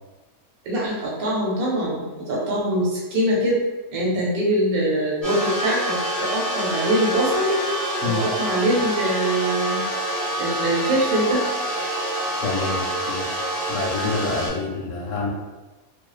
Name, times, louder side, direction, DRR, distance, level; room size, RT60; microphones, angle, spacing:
voice 1, 0.6-3.6 3.9-7.6 8.0-9.8 10.4-11.4, right 1 dB, 90° right, -5 dB, 1.3 m, -23 dB
sound 1, 5.2-14.5, right 1 dB, ahead, 0.4 m, -26 dB
voice 2, 12.4-15.3, left 4 dB, 70° left, -3 dB, 0.9 m, -28 dB
2.3 x 2.3 x 2.3 m, 1.2 s
omnidirectional pair, 1.5 m